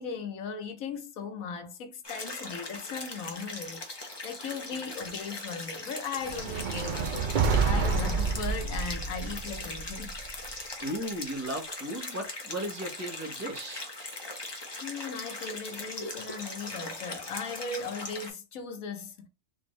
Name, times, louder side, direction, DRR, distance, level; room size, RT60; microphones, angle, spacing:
voice 1, 0.0-7.2 7.6-10.1 14.8-19.3, left 5 dB, 80° left, 1.2 m, -38 dB
sound 1, 2.0-18.3, left 2 dB, 25° left, 0.7 m, -40 dB
sound 2, 6.2-10.5, right 5 dB, 50° right, 0.6 m, -29 dB
voice 2, 10.8-13.9, right 1 dB, 15° right, 1.0 m, -36 dB
4.2 x 2.6 x 3.1 m
omnidirectional pair, 1.4 m